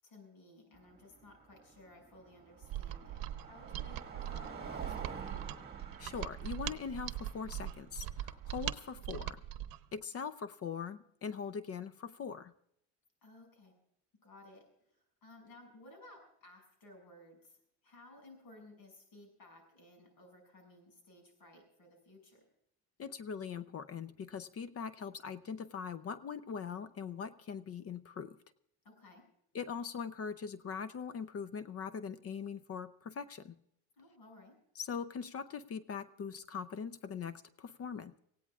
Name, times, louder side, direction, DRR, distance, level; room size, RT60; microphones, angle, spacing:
voice 1, 0.0-5.4 13.2-13.7 14.2-17.6 17.8-22.4 28.8-29.2 34.0-34.6, left 2 dB, 65° left, 3 dB, 6.7 m, -57 dB
Car passing by, 0.7-9.0, right 5 dB, 25° right, 1.8 m, -49 dB
Mechanisms, 2.6-9.8, right 12 dB, 65° right, 0.8 m, -41 dB
voice 2, 6.0-9.4 9.9-12.5 23.0-28.4 29.5-33.6 34.8-38.2, left 6 dB, 40° left, 14 dB, 0.6 m, -41 dB
25.5 x 17.0 x 2.4 m, 0.75 s
cardioid pair, 110°, 38 cm